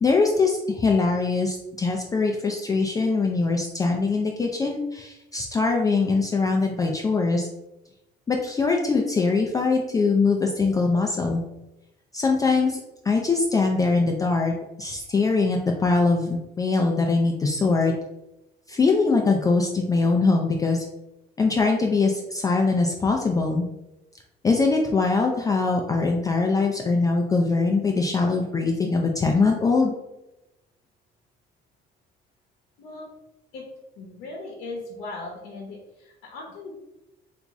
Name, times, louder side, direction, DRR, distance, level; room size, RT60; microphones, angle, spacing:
voice 1, 0.0-7.5 8.3-11.4 12.1-12.8 13.0-17.9 18.7-20.8 21.4-23.7 24.4-29.9, left 3 dB, 20° left, 1 dB, 0.3 m, -22 dB
voice 2, 32.8-33.1 33.5-33.6 34.0-36.7, left 2 dB, 85° left, -1 dB, 0.7 m, -38 dB
3.0 x 2.5 x 3.5 m, 0.94 s
cardioid pair, 110°, 17 cm